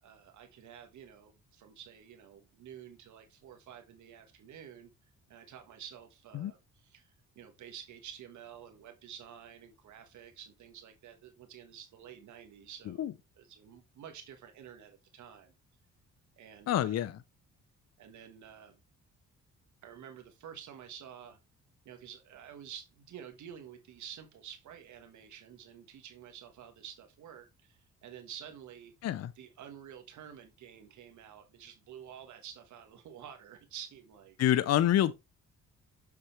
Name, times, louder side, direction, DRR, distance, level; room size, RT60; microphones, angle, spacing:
voice 1, 0.0-4.9 5.3-13.1 13.4-15.5 16.4-17.1 18.0-18.8 19.8-21.4 21.8-34.4, right 9 dB, 70° right, 1.5 m, -50 dB
voice 2, 16.7-17.2 29.0-29.3 34.4-35.2, left 11 dB, 55° left, 0.6 m, -27 dB
6.8 x 6.7 x 3.2 m
cardioid pair, 90°, 30 cm